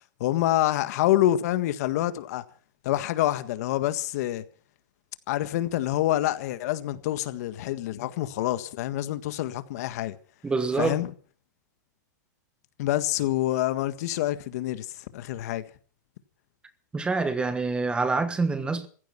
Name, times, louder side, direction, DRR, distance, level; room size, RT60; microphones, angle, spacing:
voice 1, 0.2-2.4 2.8-4.4 5.3-10.2 10.8-11.1 12.8-14.9 15.1-15.6, left 14 dB, 60° left, 1.7 m, -26 dB
voice 2, 10.4-11.0 16.9-18.9, right 3 dB, 10° right, 1.2 m, -26 dB
15.5 x 15.5 x 5.8 m
supercardioid pair, 150°, 10 cm